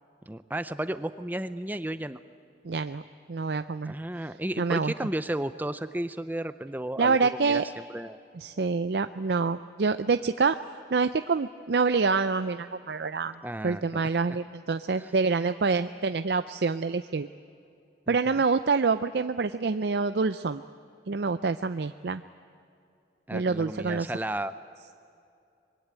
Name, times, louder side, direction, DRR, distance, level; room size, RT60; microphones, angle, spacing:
voice 1, 0.3-2.2 3.9-7.6 7.9-8.2 13.4-14.1 15.0-15.1 18.1-18.3 23.3-24.5, right 1 dB, 10° right, 12 dB, 0.5 m, -33 dB
voice 2, 2.6-3.0 3.3-3.9 4.6-4.9 7.0-7.6 8.3-10.6 10.9-13.4 13.6-17.3 18.1-20.6 21.1-22.2 23.3-24.1, right 4 dB, 70° right, 10 dB, 0.5 m, -26 dB
25.0 x 21.5 x 9.0 m, 2.6 s
head